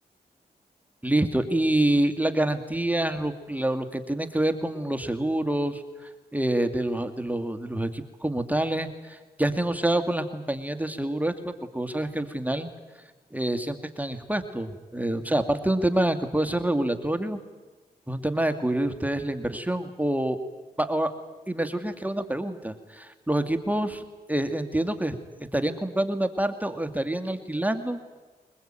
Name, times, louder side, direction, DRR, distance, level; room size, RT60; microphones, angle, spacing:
voice 1, 1.0-12.7 13.3-17.4 18.1-20.4 20.8-21.1 21.5-24.0 24.3-25.2 25.5-28.0, right 1 dB, 10° right, 7 dB, 2.3 m, -27 dB
22.5 x 21.0 x 9.1 m, 1.3 s
cardioid pair, 45°, 18 cm